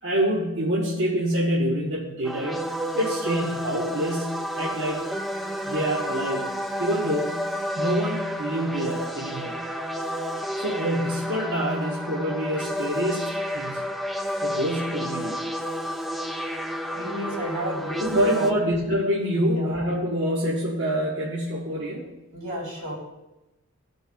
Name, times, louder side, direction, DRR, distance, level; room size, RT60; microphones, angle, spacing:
voice 1, 0.0-5.1 5.7-6.5 6.8-7.5 7.8-9.7 10.6-13.8 14.4-15.4 18.0-22.1, equal, 50° right, -6 dB, 1.3 m, -26 dB
sound 1, 2.2-18.5, equal, ahead, 0.3 m, -31 dB
voice 2, 16.9-18.0 18.3-18.5 19.3-19.7 22.3-23.0, equal, 80° right, -4 dB, 3.2 m, -32 dB
15.5 x 5.5 x 2.4 m, 0.98 s
head